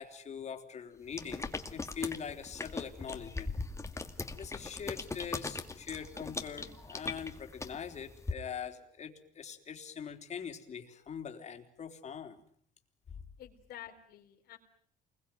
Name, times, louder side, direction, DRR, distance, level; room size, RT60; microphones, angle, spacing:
voice 1, 0.0-3.6 4.4-12.4 13.1-13.2, left 7 dB, 45° left, 5 dB, 3.8 m, -43 dB
sound 1, 1.1-8.3, left 3 dB, 15° left, 2.4 m, -40 dB
voice 2, 13.4-14.6, left 11 dB, 70° left, 2 dB, 4.0 m, -49 dB
28.0 x 22.0 x 9.3 m, 0.64 s
cardioid pair, 110°, 17 cm